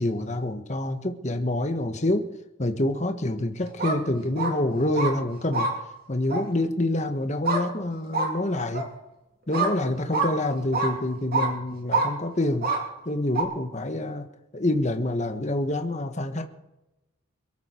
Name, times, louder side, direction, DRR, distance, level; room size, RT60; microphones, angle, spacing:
voice 1, 0.0-2.3 2.6-5.7 6.1-8.8 9.5-12.7 13.0-14.3 14.5-16.4, left 1 dB, 35° left, 6 dB, 1.4 m, -27 dB
sound 1, 3.7-4.0 4.4-4.5 4.9-5.1 5.5-5.7 6.3-6.4 7.4-7.6 8.1-8.3 8.7-8.9 9.5-9.7 10.1-10.3 10.7-10.9 11.3-11.5 11.9-12.1 12.6-12.8 13.3-13.4, right 3 dB, 45° right, 3.3 m, -25 dB
23.0 x 13.5 x 4.5 m, 0.94 s
head